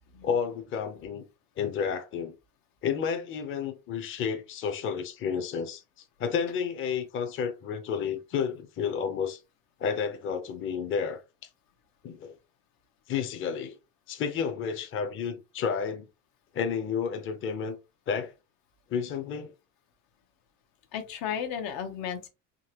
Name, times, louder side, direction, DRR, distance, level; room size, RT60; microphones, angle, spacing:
voice 1, 0.2-1.2 1.6-2.4 2.8-5.8 6.2-9.4 9.8-11.2 12.0-12.3 13.1-13.8 14.1-16.1 16.5-17.8 18.1-18.3 18.9-19.5, left 6 dB, 35° left, 0.6 m, -31 dB
voice 2, 20.9-22.3, left 8 dB, 80° left, 0.9 m, -34 dB
3.7 x 2.9 x 2.8 m
cardioid pair, 135°, 34 cm